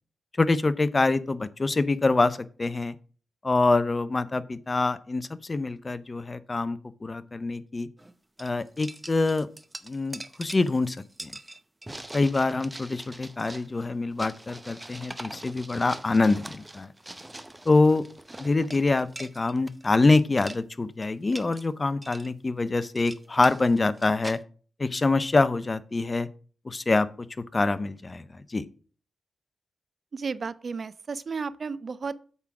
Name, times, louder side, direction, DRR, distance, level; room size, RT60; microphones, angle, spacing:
voice 1, 0.4-3.0 3.4-7.9 8.4-9.5 9.8-11.0 11.2-11.3 12.1-16.9 17.7-18.0 18.4-24.4 24.8-26.3 26.6-28.6, left 3 dB, 35° left, 0.6 m, -25 dB
sound 1, 8.0-8.1 8.4-20.1 20.3-20.6 21.0-21.7 22.0-22.3 22.8-24.4, right 1 dB, 15° right, 0.7 m, -43 dB
voice 2, 30.1-32.1, right 5 dB, 55° right, 0.5 m, -33 dB
8.1 x 3.7 x 5.9 m
cardioid pair, 65°, 0 cm